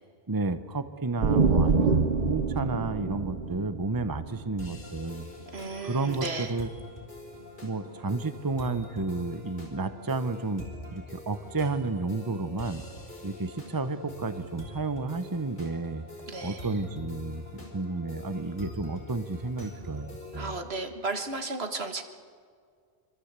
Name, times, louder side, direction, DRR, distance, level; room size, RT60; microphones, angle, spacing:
voice 1, 0.3-5.3 5.8-6.7 7.6-10.6 10.9-12.8 13.2-16.0 16.4-20.5, right 3 dB, 20° right, 11 dB, 0.9 m, -31 dB
sound 1, 1.2-4.8, right 4 dB, 45° right, 1.3 m, -26 dB
sound 2, 4.6-20.6, left 1 dB, 65° left, 4.8 m, -44 dB
voice 2, 5.5-6.6 16.3-16.8 20.3-22.0, right 3 dB, 70° right, 6 dB, 2.0 m, -34 dB
25.5 x 25.0 x 8.2 m, 2.1 s
omnidirectional pair, 1.1 m